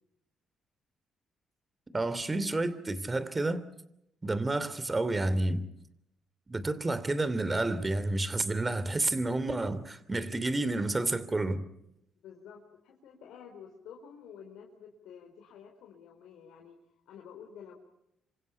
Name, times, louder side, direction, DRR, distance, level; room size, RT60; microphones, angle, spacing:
voice 1, 1.9-3.6 4.2-5.6 6.5-11.7, right 2 dB, 20° right, 3.0 m, -30 dB
voice 2, 12.2-16.8 17.1-17.7, left 7 dB, 85° left, 4.4 m, -50 dB
28.0 x 26.5 x 5.8 m
cardioid pair, 90°, 0 cm